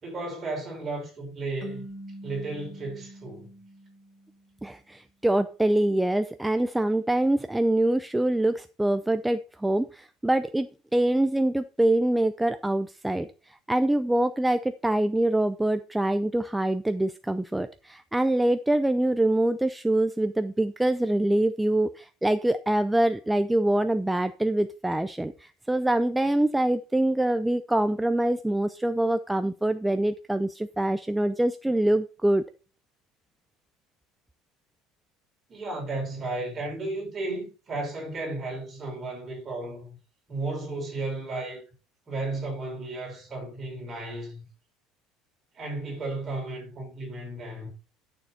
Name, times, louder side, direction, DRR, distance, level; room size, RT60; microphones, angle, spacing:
voice 1, 0.0-1.9 2.2-3.5 35.5-40.0 40.3-41.6 42.1-44.5 45.5-47.7, right 2 dB, 25° right, 5.3 m, -34 dB
sound 1, 1.6-4.8, equal, 30° left, 2.0 m, -44 dB
voice 2, 4.6-10.7 10.9-32.4, right 1 dB, 5° right, 0.4 m, -25 dB
11.5 x 6.8 x 4.1 m
cardioid pair, 150°, 0 cm